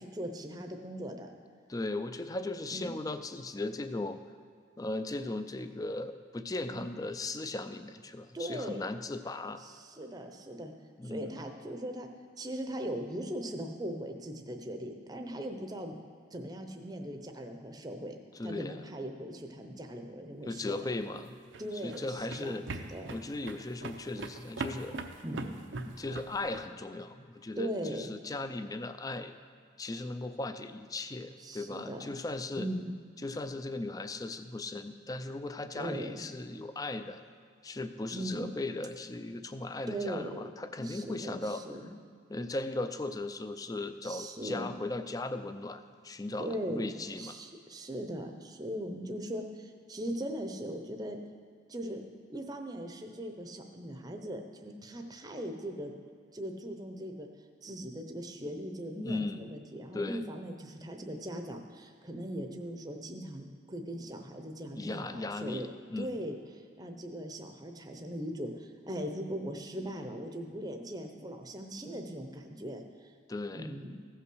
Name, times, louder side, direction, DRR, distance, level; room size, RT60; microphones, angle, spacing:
voice 1, 0.0-1.3 2.7-2.9 6.7-6.9 8.3-8.9 9.6-10.7 11.0-12.1 12.4-16.0 16.3-18.2 18.4-21.1 21.6-23.1 25.2-25.5 27.6-28.1 31.4-32.0 32.6-32.9 35.8-36.3 38.1-38.5 39.9-40.5 40.8-41.9 44.0-44.7 46.4-51.2 51.7-55.9 56.3-57.3 57.6-65.7 66.0-73.1 73.5-73.9, equal, 20° right, 4 dB, 0.7 m, -39 dB
voice 2, 1.7-4.2 4.8-9.6 11.0-11.4 18.3-18.8 20.4-21.4 21.8-22.7 23.1-25.0 25.9-29.3 29.8-32.7 33.2-37.2 37.6-41.6 42.3-47.4 59.0-59.5 59.9-60.3 64.7-66.2 73.3-73.7, left 2 dB, 20° left, 10 dB, 0.4 m, -37 dB
sound 1, 21.0-26.7, right 3 dB, 85° right, 0.7 m, -41 dB
15.0 x 5.7 x 6.2 m, 2.2 s
head